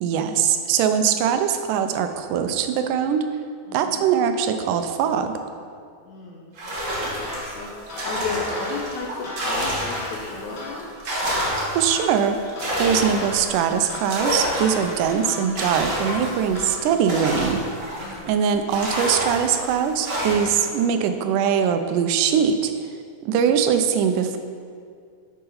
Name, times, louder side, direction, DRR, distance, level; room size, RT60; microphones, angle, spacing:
voice 1, 0.0-3.3 3.7-5.3 11.8-12.4 12.8-17.6 18.3-22.7 23.2-24.4, right 8 dB, 85° right, 8 dB, 2.1 m, -22 dB
voice 2, 3.7-4.1 6.1-6.8 7.0-10.9 14.7-15.2 18.0-18.3 20.4-20.6 23.4-23.5, left 4 dB, 75° left, -2 dB, 2.0 m, -35 dB
sound 1, 6.6-10.4 10.8-18.3 18.7-20.7, equal, 70° right, 0.7 m, -28 dB
sound 2, 7.2-17.8, left 2 dB, 50° left, 1.7 m, -39 dB
8.5 x 4.7 x 5.5 m, 2.2 s
omnidirectional pair, 3.6 m